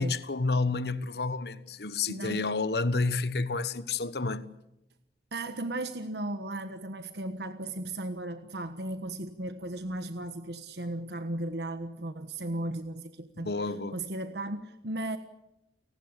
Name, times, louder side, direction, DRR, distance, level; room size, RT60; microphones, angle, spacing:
voice 1, 0.0-4.4 13.4-14.0, left 3 dB, 65° left, 1.3 m, -30 dB
voice 2, 2.1-2.5 5.3-15.2, right 1 dB, 70° right, 1.3 m, -36 dB
30.0 x 18.5 x 8.3 m
head